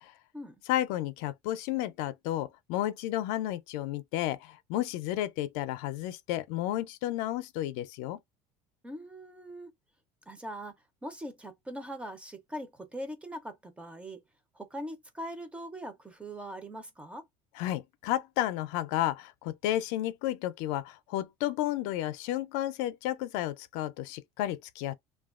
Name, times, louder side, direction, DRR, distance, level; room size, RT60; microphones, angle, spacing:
voice 1, 0.7-8.2 17.5-24.9, left 13 dB, 70° left, 0.4 m, -32 dB
voice 2, 8.8-9.7 10.3-10.7 11.0-14.2 14.6-17.2, equal, 10° right, 0.4 m, -41 dB
2.9 x 2.2 x 2.3 m
cardioid pair, 145°, 15 cm